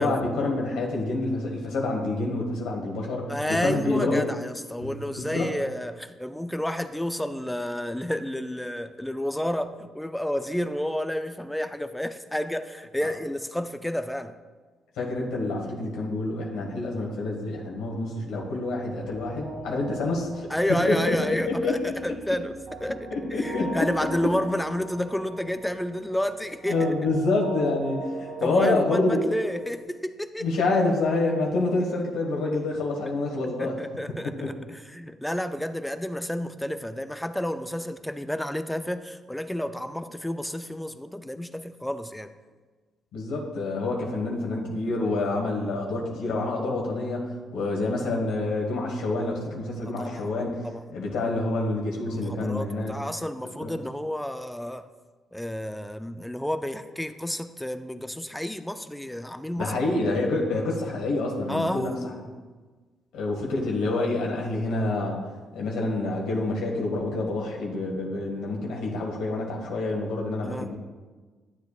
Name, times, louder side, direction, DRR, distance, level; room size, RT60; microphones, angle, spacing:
voice 1, 0.0-4.2 4.8-5.5 15.0-20.5 20.9-21.2 21.5-21.9 23.1-23.9 26.7-29.2 30.4-33.8 34.2-34.5 43.1-50.6 50.9-52.9 53.6-53.7 59.6-61.9 62.2-62.3 63.1-65.2 65.5-70.7, left 2 dB, 90° left, -1 dB, 1.4 m, -27 dB
voice 2, 3.3-14.3 20.5-22.5 22.8-26.8 28.4-30.5 33.1-33.2 33.6-42.3 49.9-50.3 50.6-50.9 52.0-54.9 55.3-59.8 61.5-62.0 70.4-70.7, equal, 5° left, 10 dB, 0.4 m, -30 dB
sound 1, 18.9-29.8, right 2 dB, 70° right, 2.3 m, -41 dB
11.5 x 7.4 x 2.4 m, 1.4 s
cardioid pair, 90°, 0 cm